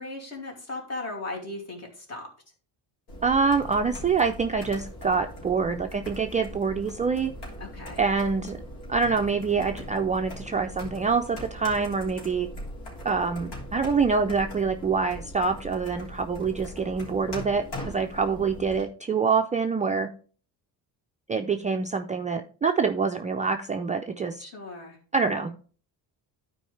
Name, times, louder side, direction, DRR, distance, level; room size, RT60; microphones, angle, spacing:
voice 1, 0.0-2.3 7.6-8.0 24.4-25.0, left 2 dB, 40° left, 0 dB, 2.6 m, -37 dB
sound 1, 3.1-18.8, equal, 90° left, 3.1 m, -40 dB
voice 2, 3.2-7.3 8.0-8.6 8.9-12.5 13.0-20.1 21.3-24.4 25.1-25.5, right 5 dB, 20° right, 4 dB, 0.4 m, -26 dB
12.0 x 4.6 x 3.2 m, 0.41 s
cardioid pair, 140°, 40 cm